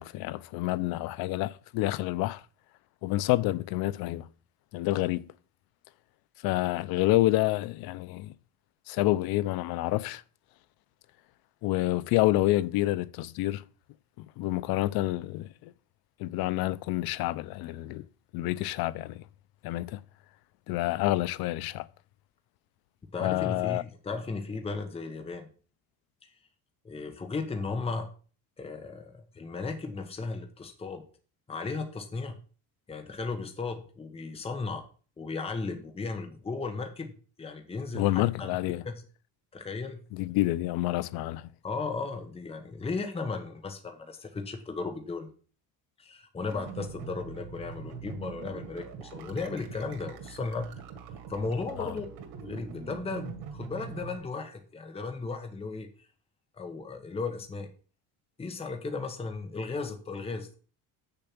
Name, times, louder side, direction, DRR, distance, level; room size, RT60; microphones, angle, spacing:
voice 1, 0.0-2.4 3.0-4.3 4.7-5.3 6.4-8.3 8.9-10.2 11.6-13.6 14.2-15.7 16.2-18.1 18.3-19.3 19.6-20.0 20.7-21.9 23.2-23.8 37.9-38.8 40.1-41.5 51.8-51.9, left 17 dB, 80° left, 0.6 m, -28 dB
voice 2, 23.1-25.5 26.2-26.3 26.8-28.1 28.6-31.0 31.5-32.4 32.9-34.8 35.2-38.5 38.8-39.0 39.5-40.0 41.6-45.3 46.0-50.7 51.3-52.1 52.4-55.9 56.6-57.7 58.4-60.6, left 4 dB, 15° left, 1.1 m, -35 dB
sound 1, 46.5-54.2, right 7 dB, 90° right, 2.3 m, -43 dB
7.9 x 6.9 x 6.0 m
cardioid pair, 145°, 36 cm